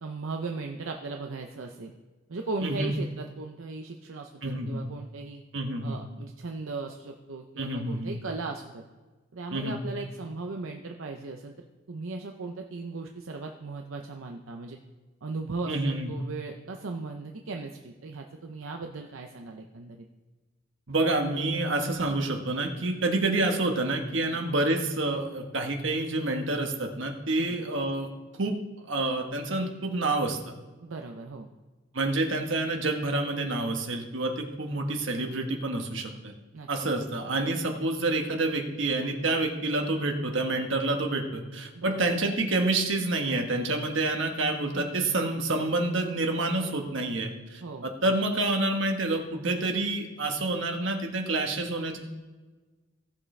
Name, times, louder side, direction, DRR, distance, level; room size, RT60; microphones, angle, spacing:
voice 1, 0.0-1.9 2.3-5.4 5.8-8.8 9.3-11.6 11.9-14.8 15.2-20.0 24.2-24.4 27.4-27.6 30.8-31.5 36.5-36.9 41.7-41.9 44.7-44.9 47.6-47.9, right 3 dB, 80° right, 3 dB, 0.7 m, -37 dB
voice 2, 2.6-2.9 4.4-4.8 5.5-6.0 7.6-8.2 9.5-9.8 15.7-16.1 20.9-28.1 28.4-28.6 28.9-30.5 31.9-36.3 36.7-52.0, right 2 dB, 65° right, 3 dB, 1.4 m, -28 dB
16.5 x 7.2 x 3.3 m, 1.3 s
head